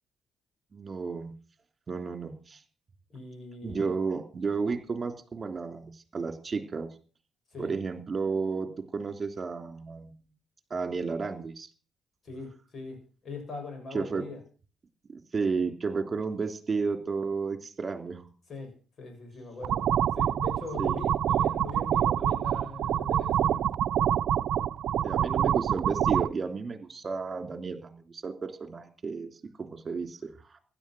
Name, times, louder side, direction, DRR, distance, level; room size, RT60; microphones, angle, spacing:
voice 1, 0.7-1.3 1.9-2.6 3.6-6.9 7.6-10.2 10.7-11.7 13.9-14.2 15.1-18.3 20.8-21.1 25.0-29.3 29.6-30.6, right 4 dB, 35° right, 7 dB, 3.2 m, -32 dB
voice 2, 3.1-3.9 7.5-7.7 12.2-14.4 18.5-18.7 19.0-23.8, left 3 dB, 50° left, 5 dB, 7.1 m, -41 dB
sound 1, 19.6-26.3, right 10 dB, 70° right, 0.7 m, -26 dB
16.0 x 11.5 x 6.3 m, 0.39 s
cardioid pair, 90°, 0 cm